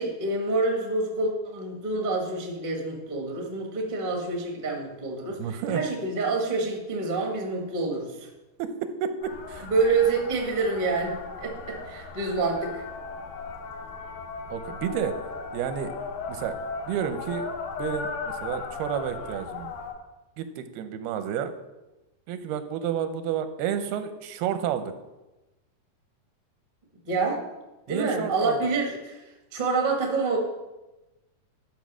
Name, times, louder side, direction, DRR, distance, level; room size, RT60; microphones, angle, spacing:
voice 1, 0.0-8.3 9.6-12.9 27.1-27.4 27.9-29.2 29.5-30.4, right 3 dB, 65° right, 0 dB, 0.4 m, -27 dB
voice 2, 5.4-5.8 8.6-9.7 14.5-15.1 15.5-15.9 16.3-16.6 16.9-17.5 17.8-19.7 20.4-21.5 22.3-24.9 27.9-28.7, right 9 dB, 85° right, 9 dB, 2.7 m, -30 dB
sound 1, 9.2-19.9, left 4 dB, 70° left, 2.7 m, -37 dB
12.5 x 5.5 x 6.2 m, 1.1 s
omnidirectional pair, 4.4 m